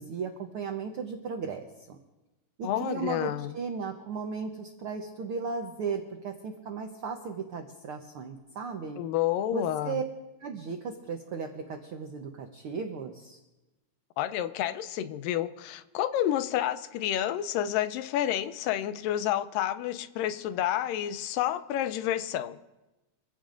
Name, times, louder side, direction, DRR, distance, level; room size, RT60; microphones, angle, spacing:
voice 1, 0.0-2.0 2.6-9.0 9.5-10.0 10.4-13.4, right 5 dB, 85° right, 1.2 m, -36 dB
voice 2, 2.6-3.5 9.0-10.0 14.2-22.6, left 12 dB, 85° left, 2.3 m, -29 dB
26.5 x 15.5 x 2.6 m
omnidirectional pair, 3.9 m